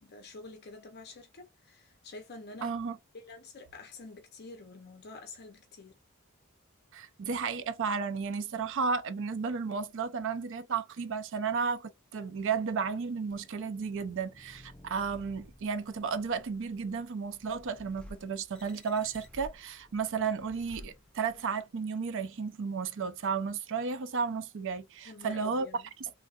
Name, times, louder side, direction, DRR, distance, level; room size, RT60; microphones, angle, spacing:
voice 1, 0.0-2.7 3.1-6.0 25.1-25.9, left 3 dB, 50° left, 0.6 m, -48 dB
voice 2, 2.6-3.0 6.9-25.7 26.0-26.1, right 5 dB, 60° right, 0.5 m, -33 dB
sound 1, 13.3-21.6, left 1 dB, 5° left, 0.4 m, -54 dB
3.2 x 2.6 x 2.3 m
head